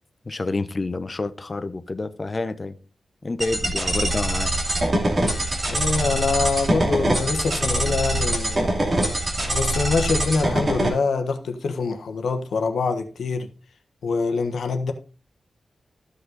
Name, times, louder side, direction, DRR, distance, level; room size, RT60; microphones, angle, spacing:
voice 1, 0.2-2.8 3.2-4.5, left 3 dB, 30° left, 0.8 m, -28 dB
sound 1, 3.4-10.9, right 1 dB, 30° right, 2.5 m, -23 dB
voice 2, 5.7-8.7 9.5-13.5 14.0-14.9, left 4 dB, 80° left, 1.3 m, -25 dB
14.0 x 5.4 x 4.0 m
wide cardioid pair, 125°, 0 cm